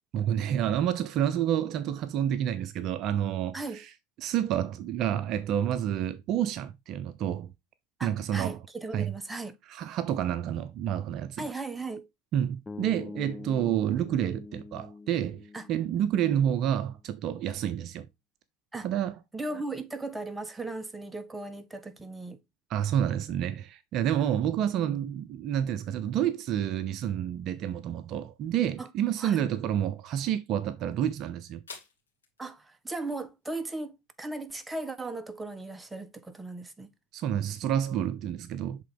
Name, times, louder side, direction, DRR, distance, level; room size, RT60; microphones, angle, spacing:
voice 1, 0.1-3.9 4.2-7.5 8.0-8.6 8.9-9.1 9.7-11.5 12.3-15.4 15.7-18.1 18.8-19.1 22.7-31.6 37.1-38.8, right 10 dB, 50° right, 0.6 m, -29 dB
voice 2, 3.5-3.8 8.0-9.5 11.4-12.1 15.5-15.7 18.7-18.9 19.3-22.4 28.8-28.9 29.2-29.4 32.4-36.9, right 2 dB, 10° right, 0.9 m, -37 dB
sound 1, 12.7-16.8, left 4 dB, 20° left, 0.4 m, -44 dB
sound 2, 29.2-37.4, left 5 dB, 85° left, 2.0 m, -57 dB
7.5 x 3.8 x 3.6 m
hypercardioid pair, 75°, 0 cm